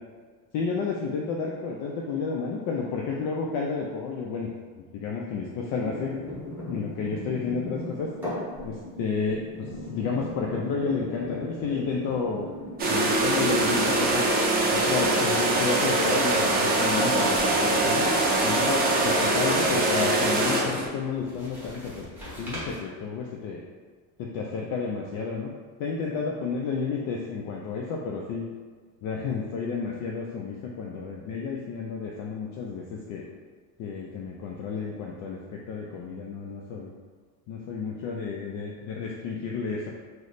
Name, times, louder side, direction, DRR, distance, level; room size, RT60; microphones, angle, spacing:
voice 1, 0.5-4.5 4.9-6.1 6.7-8.1 8.6-12.5 12.8-14.3 14.7-18.1 18.4-22.1 22.4-23.6 24.2-25.5 25.8-28.4 29.0-33.3 33.8-36.9 37.5-39.9, left 5 dB, 60° left, -1 dB, 0.5 m, -31 dB
sound 1, 5.8-13.9 14.2-14.6 16.9-18.4 21.1-22.8, left 1 dB, 5° right, 0.9 m, -38 dB
sound 2, 12.8-20.9, right 2 dB, 25° right, 0.4 m, -23 dB
3.1 x 2.1 x 3.9 m, 1.5 s
cardioid pair, 140°, 38 cm